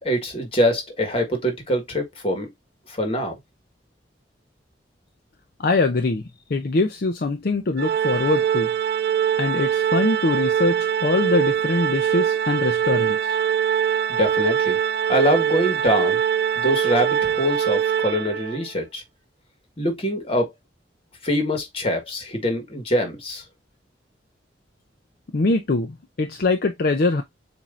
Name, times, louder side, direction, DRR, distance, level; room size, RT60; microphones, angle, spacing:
voice 1, 0.0-2.5 2.9-3.4 14.2-14.8 15.1-16.2 16.6-19.0 19.8-20.5 21.2-23.4, equal, 35° left, 1.5 m, -24 dB
voice 2, 5.6-6.2 6.5-8.7 9.4-13.4 25.3-27.2, left 3 dB, 55° left, 0.6 m, -23 dB
Organ, 7.8-18.7, right 9 dB, 60° right, 0.4 m, -22 dB
7.2 x 2.7 x 2.5 m
head